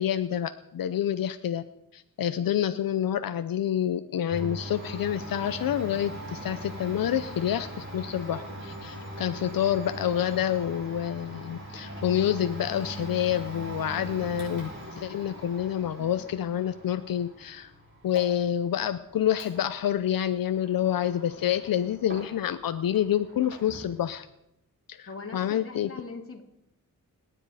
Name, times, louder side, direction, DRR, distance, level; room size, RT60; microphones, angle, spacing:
voice 1, 0.0-1.6 1.9-17.7 18.0-24.3 24.9-25.9, left 10 dB, 85° left, 10 dB, 0.7 m, -28 dB
Domestic sounds home sounds, 4.3-22.6 22.9-24.0, right 1 dB, 35° right, 7.5 m, -41 dB
voice 2, 25.1-26.4, left 4 dB, 40° left, 2 dB, 2.9 m, -40 dB
28.5 x 10.0 x 4.9 m, 0.84 s
wide cardioid pair, 120°, 34 cm